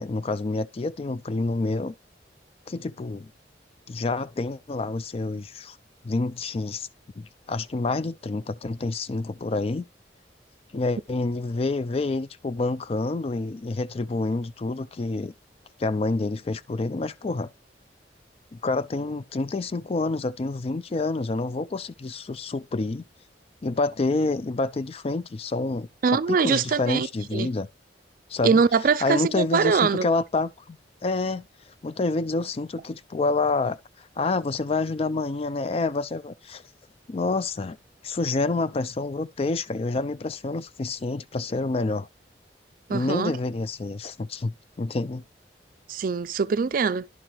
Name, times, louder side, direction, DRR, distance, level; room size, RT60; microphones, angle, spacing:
voice 1, 0.0-1.9 2.7-3.3 3.9-5.8 6.0-6.9 7.2-9.8 10.7-15.3 15.8-17.5 18.5-23.0 23.6-27.7 28.3-28.6 29.0-30.8 31.0-31.5 31.8-36.6 37.1-37.8 38.0-42.1 42.9-45.2, left 3 dB, 35° left, 0.4 m, -28 dB
voice 2, 26.0-27.5 28.4-30.1 42.9-43.4 45.9-47.1, right 5 dB, 50° right, 0.4 m, -23 dB
11.0 x 5.8 x 3.0 m
head